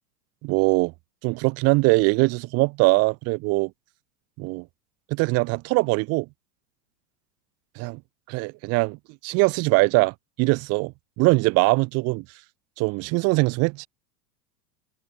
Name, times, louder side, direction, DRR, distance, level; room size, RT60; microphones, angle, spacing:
voice 1, 0.4-0.9 1.2-3.7 4.4-4.7 5.1-6.3 7.8-8.0 8.3-9.0 9.2-12.2 12.8-13.9, right 26 dB, 35° right, 0.5 m, -22 dB
open air
hypercardioid pair, 110°, 48 cm